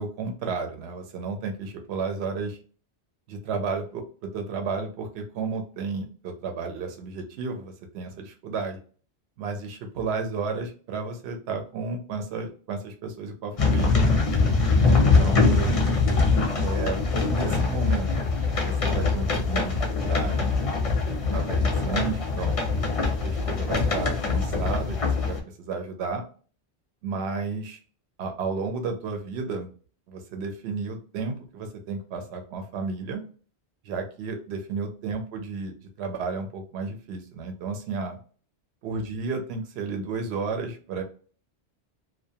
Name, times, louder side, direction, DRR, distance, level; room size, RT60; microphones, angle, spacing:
voice 1, 0.0-2.6 3.3-8.8 9.4-14.0 14.7-15.9 16.6-17.0 17.3-18.1 18.6-20.5 21.0-22.6 23.1-26.2 27.0-27.8 28.2-29.7 30.1-33.2 33.8-38.2 38.8-41.0, right 4 dB, 75° right, 4 dB, 0.8 m, -32 dB
sound 1, 13.6-25.4, left 4 dB, 45° left, 0.5 m, -23 dB
2.3 x 2.2 x 2.7 m, 0.40 s
omnidirectional pair, 1.1 m